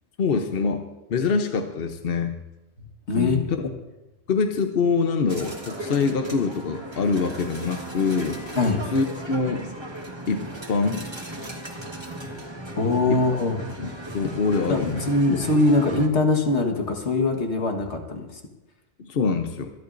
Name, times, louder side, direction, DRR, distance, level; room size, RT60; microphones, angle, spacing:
voice 1, 0.2-0.8 1.1-2.4 3.1-3.6 4.3-8.4 8.9-9.6 10.3-11.1 13.1-13.2 13.8-15.4 19.0-19.7, left 4 dB, 60° left, 5 dB, 1.0 m, -25 dB
voice 2, 2.8-3.4 8.6-8.8 12.8-13.6 14.7-18.3, left 2 dB, 80° left, 3 dB, 1.9 m, -22 dB
sound 1, 5.3-16.1, right 1 dB, 25° right, 1.6 m, -36 dB
25.5 x 11.5 x 2.6 m, 1.0 s
omnidirectional pair, 1.1 m